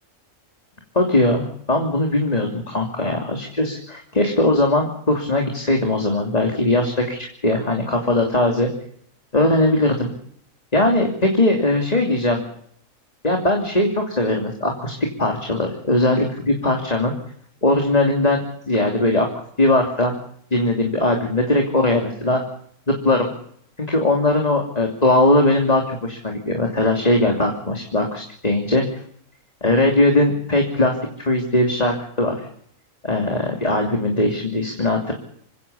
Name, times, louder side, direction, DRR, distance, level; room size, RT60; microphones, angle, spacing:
voice 1, 0.9-8.7 9.3-10.1 10.7-12.4 13.2-17.1 17.6-19.3 19.6-20.1 20.5-22.4 22.9-23.3 23.8-28.8 29.6-31.0 31.2-32.3 33.0-35.1, left 1 dB, 30° left, 2 dB, 3.0 m, -20 dB
27.5 x 16.5 x 7.2 m, 0.66 s
omnidirectional pair, 1.4 m